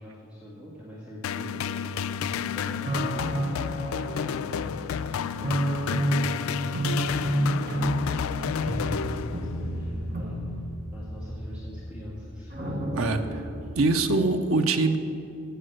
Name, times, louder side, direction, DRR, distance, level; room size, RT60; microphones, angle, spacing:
voice 1, 0.0-1.9 2.2-3.7 4.2-6.6 7.3-10.4 10.9-12.7, equal, 5° right, -8 dB, 1.8 m, -44 dB
sound 1, 1.2-9.7, left 7 dB, 85° left, 0.3 m, -31 dB
sound 2, 2.9-4.9 5.4-13.8, right 1 dB, 45° right, 1.1 m, -30 dB
voice 2, 12.9-13.4 13.8-15.0, right 3 dB, 85° right, 7 dB, 0.7 m, -23 dB
8.6 x 8.0 x 7.8 m, 2.7 s
head